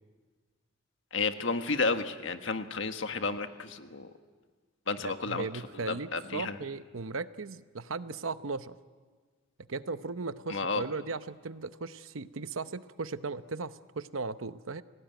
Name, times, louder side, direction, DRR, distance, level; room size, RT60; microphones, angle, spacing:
voice 1, 1.1-4.1 4.9-6.6 10.5-10.9, left 4 dB, 70° left, 7 dB, 1.5 m, -32 dB
voice 2, 5.0-8.8 9.7-14.8, right 4 dB, 85° right, 13 dB, 0.8 m, -37 dB
29.5 x 18.5 x 9.1 m, 1.5 s
head